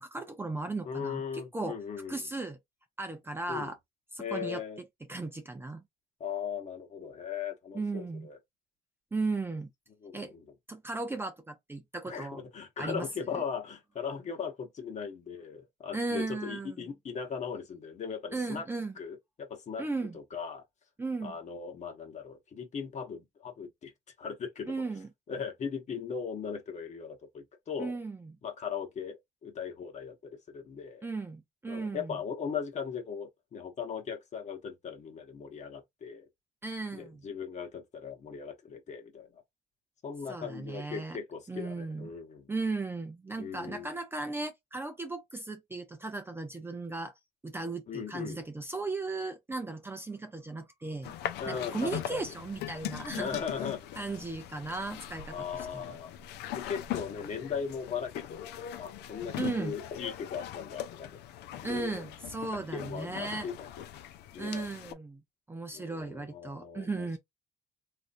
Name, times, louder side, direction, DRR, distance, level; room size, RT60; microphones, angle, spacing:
voice 1, 0.0-1.8 2.1-2.6 3.0-3.8 4.1-5.8 7.7-8.3 9.1-9.7 10.1-10.3 10.7-12.4 12.8-13.4 15.9-16.9 18.3-18.9 19.8-20.2 21.0-21.4 24.7-25.1 27.8-28.3 31.0-32.2 36.6-37.3 40.3-41.2 41.5-42.1 42.5-47.1 47.4-51.1 51.5-53.4 54.0-55.8 59.4-59.8 61.6-63.5 64.4-65.2 65.5-67.2, right 3 dB, 15° right, 0.5 m, -36 dB
voice 2, 0.8-2.2 3.5-3.7 4.2-4.8 6.2-8.4 10.0-10.4 12.0-18.7 19.0-19.8 20.1-20.6 21.2-23.9 24.2-24.7 25.3-27.9 28.4-31.1 31.7-36.3 36.9-39.4 40.0-42.5 43.4-43.9 47.9-48.4 51.4-52.2 53.1-53.9 55.3-56.1 56.5-61.2 61.6-62.0 62.7-63.7 64.3-64.7 65.7-67.2, left 6 dB, 45° left, 1.1 m, -38 dB
sound 1, 51.0-64.9, left 11 dB, 80° left, 0.5 m, -41 dB
3.2 x 2.6 x 2.5 m
cardioid pair, 110°, 17 cm